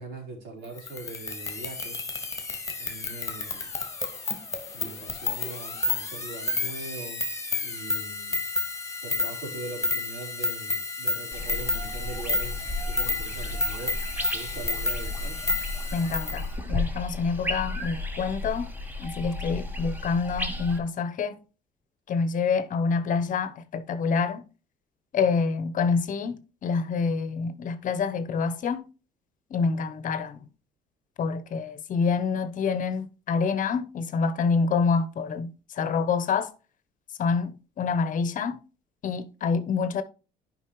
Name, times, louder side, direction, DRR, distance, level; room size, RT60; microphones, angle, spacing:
voice 1, 0.0-2.1 2.8-3.7 4.7-7.3 7.6-8.4 9.0-14.0 14.3-15.4, right 3 dB, 80° right, 3.9 m, -41 dB
sound 1, 0.8-16.4, left 2 dB, 20° left, 1.7 m, -31 dB
sound 2, 11.3-20.8, left 2 dB, 10° right, 1.6 m, -33 dB
voice 2, 15.9-18.7 19.0-21.4 22.1-24.4 25.1-28.8 29.5-30.5 31.2-36.5 37.2-38.6 39.0-40.0, left 5 dB, 50° left, 1.0 m, -27 dB
11.0 x 5.4 x 3.1 m
cardioid pair, 110°, 17 cm